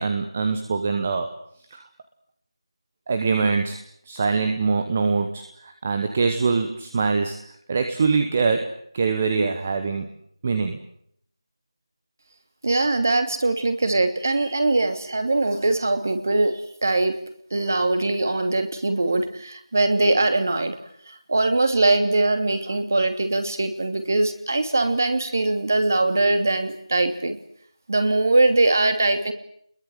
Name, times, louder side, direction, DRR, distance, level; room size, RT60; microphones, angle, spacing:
voice 1, 0.0-1.3 1.7-1.8 3.1-3.8 4.1-10.1 10.4-10.8, right 4 dB, 15° right, 7 dB, 1.0 m, -23 dB
voice 2, 12.6-17.2 17.5-20.8 21.1-27.4 27.9-29.3, right 2 dB, 30° right, 8 dB, 2.9 m, -22 dB
29.5 x 22.0 x 8.0 m, 0.67 s
figure-of-eight pair, 175°, 3 cm